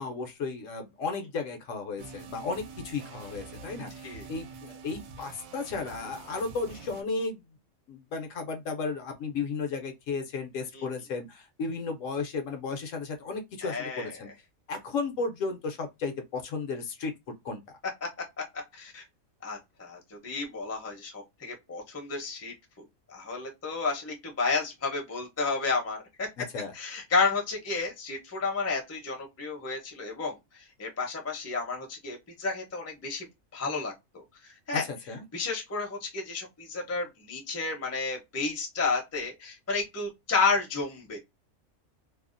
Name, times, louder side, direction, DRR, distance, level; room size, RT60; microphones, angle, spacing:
voice 1, 0.0-7.4 7.9-14.3 14.7-17.1 17.4-17.6 26.4-26.7 34.7-35.2, left 4 dB, 70° left, 0.9 m, -34 dB
sound 1, 2.0-7.0, right 4 dB, 75° right, 1.0 m, -46 dB
voice 2, 13.6-14.1 18.0-18.1 18.4-18.5 18.7-19.0 19.4-26.3 26.7-33.3 33.5-34.8 35.3-41.2, left 4 dB, 15° left, 0.5 m, -32 dB
2.6 x 2.0 x 2.4 m
omnidirectional pair, 1.5 m